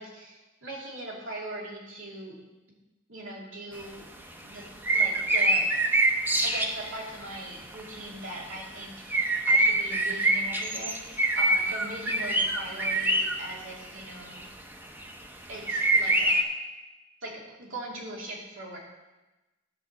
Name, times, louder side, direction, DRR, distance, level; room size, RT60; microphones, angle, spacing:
voice 1, 0.0-2.3 3.1-4.0 4.4-4.7 4.9-5.7 6.4-14.5 15.5-16.4 17.2-18.8, right 1 dB, 80° right, -3 dB, 2.6 m, -40 dB
sound 1, 3.8-3.9 4.8-6.9 7.3-7.4 7.7-7.8 9.1-13.4 14.4-14.5 15.0-15.1 15.7-16.4, right 2 dB, 10° right, 0.7 m, -24 dB
10.5 x 5.0 x 7.1 m, 1.1 s
head